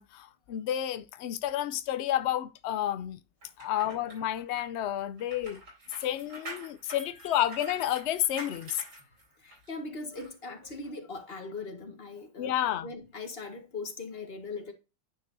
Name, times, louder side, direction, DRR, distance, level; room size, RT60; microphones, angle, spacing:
voice 1, 0.0-3.2 3.6-5.6 6.0-8.8 12.4-12.9, left 12 dB, 75° left, 0.6 m, -30 dB
sound 1, 3.4-9.7 10.2-10.3, right 1 dB, 85° right, 4.4 m, -46 dB
voice 2, 6.9-7.3 9.0-12.5 12.8-14.7, left 3 dB, 40° left, 1.7 m, -40 dB
9.7 x 5.7 x 2.6 m
omnidirectional pair, 1.7 m